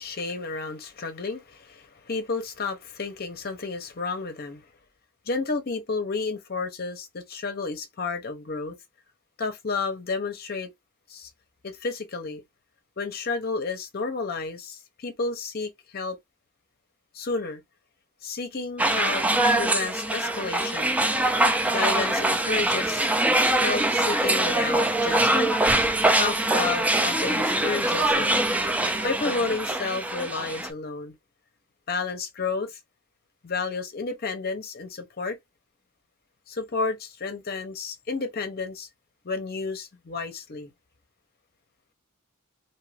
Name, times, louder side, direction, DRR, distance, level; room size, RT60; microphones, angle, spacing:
voice 1, 0.0-4.6 5.3-8.7 9.4-10.7 11.1-11.3 11.6-12.4 13.0-16.2 17.1-17.6 18.2-19.2 19.6-20.9 21.7-23.1 23.6-25.5 26.2-28.3 29.0-31.1 31.9-32.8 33.4-35.4 36.5-38.9 39.2-40.7, left 4 dB, 45° left, 0.7 m, -31 dB
sound 1, 18.8-30.7, right 1 dB, 5° right, 0.3 m, -23 dB
2.7 x 2.5 x 3.2 m
head